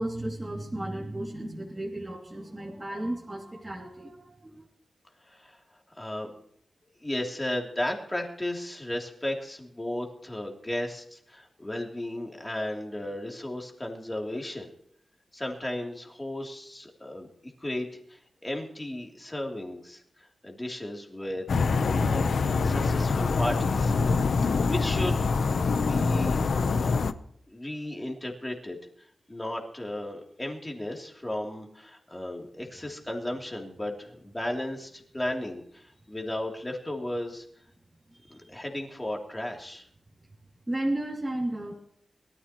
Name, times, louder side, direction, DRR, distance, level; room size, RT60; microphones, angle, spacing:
voice 1, 0.0-4.7 38.1-38.5 40.7-41.8, right 1 dB, 15° right, -3 dB, 2.6 m, -34 dB
voice 2, 5.2-5.6 5.9-6.3 7.0-14.7 15.3-21.4 22.0-22.3 22.6-23.9 24.4-25.4 25.8-26.4 26.8-27.0 27.5-37.4 38.3-39.9, left 1 dB, 15° left, 1 dB, 3.1 m, -35 dB
sound 1, 21.5-27.1, left 4 dB, 75° left, 0.8 m, -25 dB
23.0 x 13.5 x 3.1 m, 0.67 s
wide cardioid pair, 115°, 0 cm